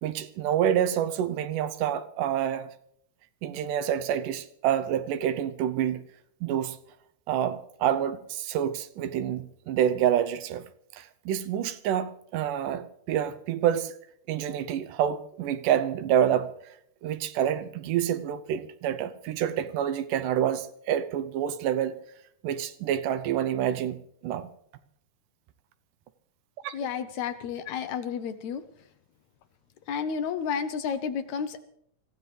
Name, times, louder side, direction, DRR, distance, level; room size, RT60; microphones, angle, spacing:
voice 1, 0.0-2.7 3.4-6.0 6.4-6.8 7.3-10.6 10.9-13.9 14.3-16.5 17.0-22.0 22.4-24.5 26.6-26.7, right 10 dB, 85° right, 2.4 m, -27 dB
voice 2, 26.7-28.6 29.9-31.6, left 7 dB, 70° left, 1.9 m, -31 dB
24.5 x 15.0 x 3.3 m
omnidirectional pair, 3.7 m